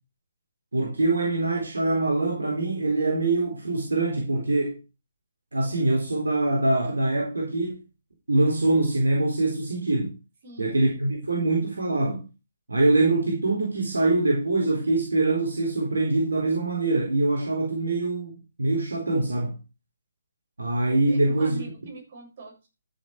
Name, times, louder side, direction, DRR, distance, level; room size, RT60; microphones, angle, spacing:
voice 1, 0.7-4.8 5.5-7.8 8.3-10.1 10.6-12.2 12.7-18.3 18.6-19.6 20.6-21.6, right 2 dB, 75° right, 4.1 m, -24 dB
voice 2, 10.4-11.0 21.1-22.7, right 2 dB, 45° right, 7.4 m, -43 dB
13.5 x 7.4 x 4.7 m
figure-of-eight pair, 135°, 0 cm